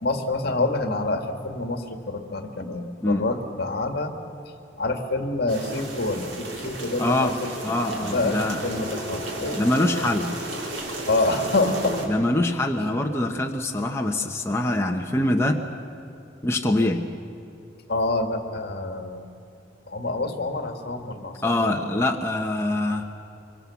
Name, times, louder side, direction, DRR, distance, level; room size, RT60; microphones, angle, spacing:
voice 1, 0.0-4.1 4.8-10.1 11.1-12.5 17.9-19.3 19.9-22.0, left 2 dB, 60° left, 6 dB, 2.0 m, -27 dB
sound 1, 5.5-12.1, right 1 dB, 85° right, 3.7 m, -33 dB
voice 2, 7.0-7.3 7.6-8.6 9.6-10.4 12.1-15.6 16.4-17.1 21.4-23.0, left 1 dB, 15° left, 1 dB, 1.0 m, -24 dB
25.0 x 24.0 x 7.1 m, 2.7 s
head